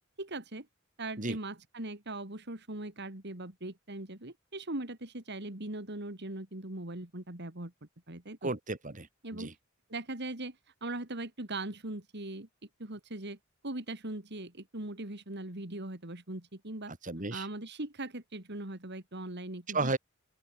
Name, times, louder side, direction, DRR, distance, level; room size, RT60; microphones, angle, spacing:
voice 1, 0.2-0.7 1.0-7.7 8.1-8.5 9.2-9.5 9.9-10.6 10.8-12.5 12.8-13.4 13.6-16.9 17.3-20.0, right 2 dB, 55° right, 3.3 m, -40 dB
voice 2, 8.4-9.5 16.9-17.5 19.7-20.0, right 3 dB, 40° right, 2.8 m, -34 dB
open air
head